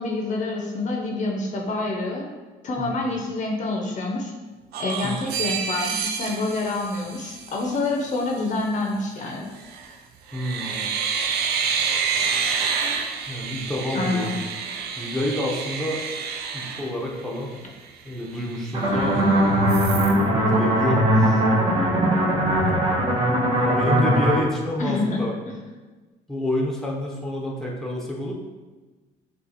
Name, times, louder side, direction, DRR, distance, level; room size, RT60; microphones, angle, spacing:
voice 1, 0.0-2.3 2.6-4.3 4.8-9.5 13.9-14.4 24.8-25.2, left 2 dB, 45° left, 0 dB, 0.7 m, -27 dB
sound 1, 4.7-7.7 9.6-9.9 10.3-17.6 18.0-18.1 18.4-19.3 19.7-20.2, right 6 dB, 70° right, 0.5 m, -28 dB
voice 2, 10.3-10.9 13.3-14.4 15.0-16.0 16.5-17.6 18.0-19.2 20.2-21.4 23.5-25.4 26.3-28.3, left 1 dB, ahead, -2 dB, 0.8 m, -28 dB
sound 2, 18.7-24.4, right 1 dB, 30° right, 1.0 m, -20 dB
6.3 x 2.4 x 2.9 m, 1.2 s
cardioid pair, 110°, 17 cm